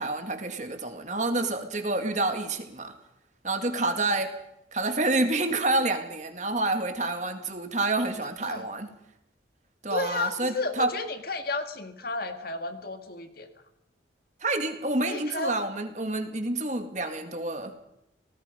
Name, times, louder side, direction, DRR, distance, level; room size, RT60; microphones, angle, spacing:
voice 1, 0.0-2.9 3.4-4.3 4.7-8.9 9.8-10.9 14.4-17.7, right 2 dB, 40° right, 6 dB, 2.3 m, -28 dB
voice 2, 9.9-13.5 15.1-15.6, left 3 dB, 50° left, 7 dB, 1.9 m, -32 dB
28.0 x 19.0 x 5.3 m, 0.81 s
head